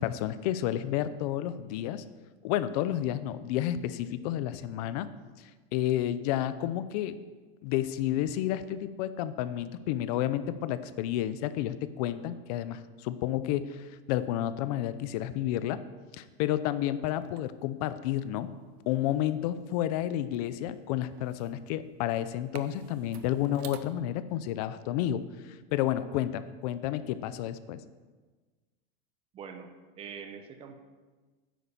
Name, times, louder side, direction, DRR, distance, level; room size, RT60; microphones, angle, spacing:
voice 1, 0.0-2.0 2.4-5.1 5.4-7.2 7.6-15.8 16.1-18.5 18.9-27.8, left 12 dB, 40° left, 13 dB, 0.6 m, -31 dB
sound 1, 17.0-23.8, right 10 dB, 85° right, 1.0 m, -52 dB
voice 2, 29.3-30.8, right 6 dB, 20° right, 7 dB, 0.8 m, -44 dB
10.0 x 9.4 x 7.0 m, 1.3 s
supercardioid pair, 170°, 31 cm